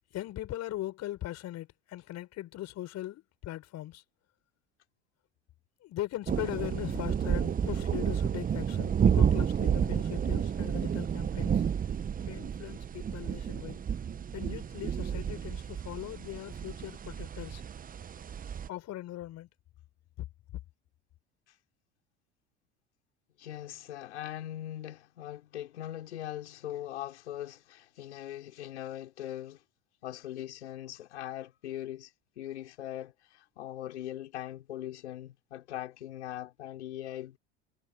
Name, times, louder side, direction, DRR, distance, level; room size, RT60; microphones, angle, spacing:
voice 1, 0.1-4.0 5.8-11.6 12.3-13.8 14.3-17.6 18.7-19.5, left 14 dB, 50° left, 6.9 m, -39 dB
sound 1, 6.3-18.7, right 8 dB, 25° right, 0.9 m, -31 dB
voice 2, 23.4-29.6 30.0-37.4, left 12 dB, 85° left, 5.5 m, -41 dB
hypercardioid pair, 80°, 33 cm